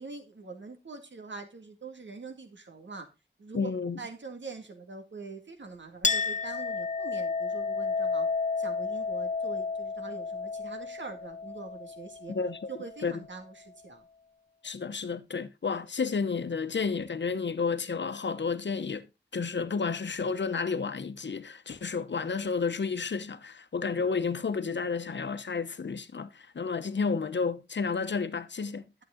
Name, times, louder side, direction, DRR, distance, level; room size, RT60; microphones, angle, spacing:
voice 1, 0.0-3.1 3.4-8.3 8.6-12.4 12.7-14.0, right 4 dB, 85° right, 2.1 m, -44 dB
voice 2, 3.5-4.0 12.3-12.6 13.0-13.2 14.6-19.1 19.3-28.8, left 5 dB, 80° left, 0.9 m, -31 dB
Chink clink, 6.0-13.1, left 4 dB, 40° left, 0.5 m, -32 dB
11.5 x 7.5 x 3.8 m
wide cardioid pair, 70°, 18 cm